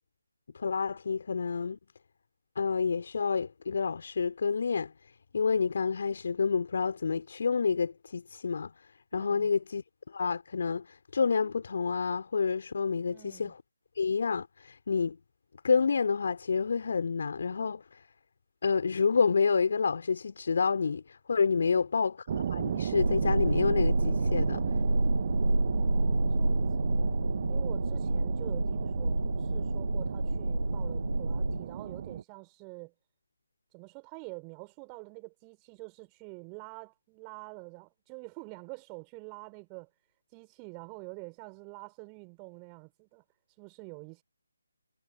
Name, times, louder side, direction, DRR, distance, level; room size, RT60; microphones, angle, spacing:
voice 1, 0.5-1.8 2.6-4.9 5.3-8.7 9.1-9.8 10.1-13.5 14.0-15.2 15.6-17.8 18.6-24.6, left 5 dB, 45° left, 4.5 m, -28 dB
voice 2, 9.1-9.5 13.1-13.5 21.5-21.9 25.7-27.2 27.5-32.9 33.7-39.9 40.3-43.2 43.6-44.2, right 40 dB or more, 15° right, 5.4 m, -47 dB
sound 1, 22.3-32.2, right 8 dB, 35° right, 1.7 m, -35 dB
sound 2, 23.0-31.6, right 1 dB, 75° right, 4.4 m, -28 dB
figure-of-eight pair, 150°, 0 cm